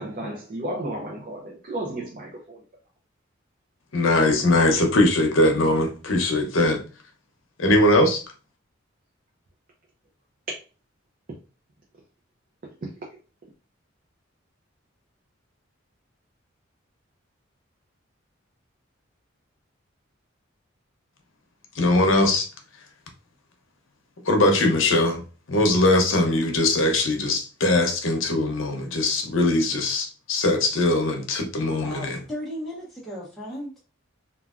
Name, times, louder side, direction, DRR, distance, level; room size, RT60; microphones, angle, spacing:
voice 1, 0.0-2.6 12.8-12.9, right 1 dB, 45° right, 0.5 m, -33 dB
voice 2, 3.9-6.8 7.6-8.2 21.8-22.5 24.2-32.2, left 2 dB, 75° left, 0.7 m, -21 dB
voice 3, 31.8-33.8, equal, ahead, 0.7 m, -35 dB
3.2 x 2.3 x 2.4 m
head